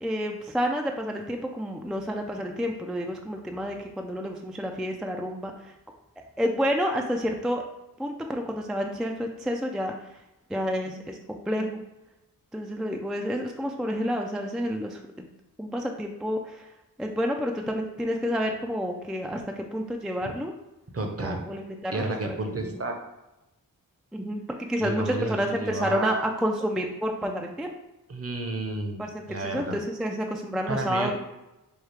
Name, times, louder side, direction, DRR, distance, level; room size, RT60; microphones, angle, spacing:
voice 1, 0.0-5.7 6.4-7.6 8.0-10.2 10.5-11.8 12.5-15.3 15.6-16.7 17.0-20.5 21.2-22.7 24.1-27.7 29.0-31.1, equal, ahead, 3 dB, 0.3 m, -29 dB
voice 2, 20.9-21.4 21.9-23.0 24.8-26.3 28.1-29.8 30.7-31.1, right 2 dB, 40° right, 2 dB, 0.7 m, -31 dB
4.7 x 2.3 x 3.2 m, 0.98 s
cardioid pair, 50°, 36 cm